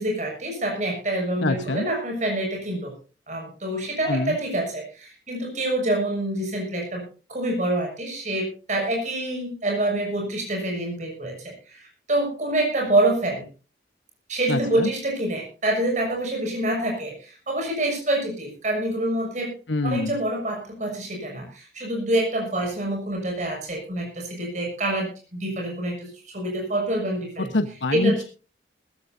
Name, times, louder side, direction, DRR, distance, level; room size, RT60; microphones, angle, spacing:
voice 1, 0.0-2.9 3.3-7.0 7.3-13.4 14.3-19.5 19.8-27.5 27.9-28.2, right 1 dB, 40° right, 0 dB, 6.8 m, -26 dB
voice 2, 1.4-1.9 4.1-4.4 14.5-14.9 19.7-20.1 27.4-28.2, left 2 dB, 90° left, 8 dB, 1.1 m, -25 dB
20.5 x 15.0 x 2.7 m, 0.33 s
head